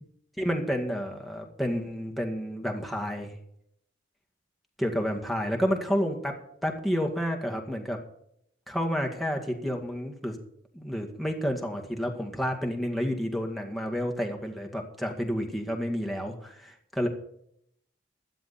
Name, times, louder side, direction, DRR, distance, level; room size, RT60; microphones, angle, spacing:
voice 1, 0.4-3.3 4.8-6.3 6.6-8.0 8.7-10.4 10.7-17.1, equal, ahead, 1 dB, 2.0 m, -30 dB
16.5 x 12.0 x 4.2 m, 0.72 s
head